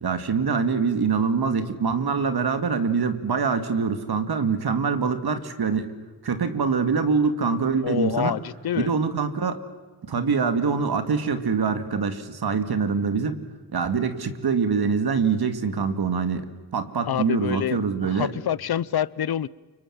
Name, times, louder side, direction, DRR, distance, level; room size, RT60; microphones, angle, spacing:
voice 1, 0.0-5.9 6.2-8.4 8.7-9.6 10.0-13.4 13.7-18.3, right 5 dB, 80° right, 2.3 m, -24 dB
voice 2, 7.8-8.9 17.1-19.5, left 10 dB, 75° left, 0.7 m, -27 dB
29.0 x 25.0 x 7.4 m
wide cardioid pair, 75°, 37 cm